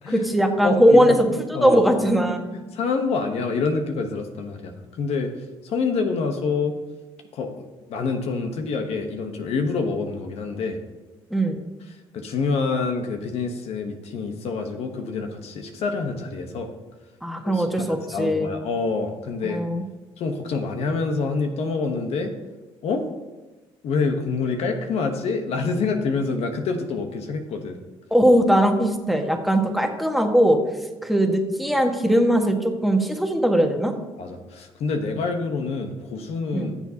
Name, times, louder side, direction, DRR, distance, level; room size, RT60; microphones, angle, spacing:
voice 1, 0.1-2.6 11.3-11.6 17.2-18.5 19.4-19.8 28.1-30.6 31.0-33.9 36.5-36.7, equal, ahead, 4 dB, 1.5 m, -20 dB
voice 2, 0.6-1.2 1.5-2.0 2.7-5.3 5.6-6.8 7.3-10.8 12.1-16.7 17.4-19.6 20.2-22.3 22.8-23.0 23.8-27.8 34.2-36.8, left 4 dB, 70° left, 5 dB, 1.1 m, -27 dB
15.0 x 7.2 x 2.9 m, 1.1 s
supercardioid pair, 65°, 11 cm